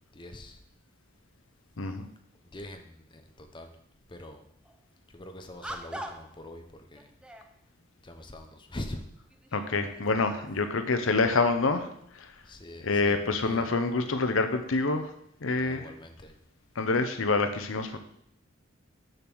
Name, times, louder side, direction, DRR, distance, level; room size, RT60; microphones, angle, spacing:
voice 1, 0.1-0.6 2.5-3.7 4.1-4.5 5.1-7.1 8.0-9.0 12.4-13.7 15.6-16.3, left 1 dB, 25° left, 5 dB, 0.9 m, -43 dB
sound 1, 4.6-4.8 5.6-6.4 6.9-7.5 8.5-8.6 9.2-10.8, equal, 5° right, 0.6 m, -43 dB
voice 2, 9.5-11.9 12.1-12.3 12.8-15.1 15.4-15.9 16.8-18.0, left 3 dB, 65° left, 8 dB, 0.8 m, -27 dB
6.8 x 6.1 x 6.2 m, 0.72 s
head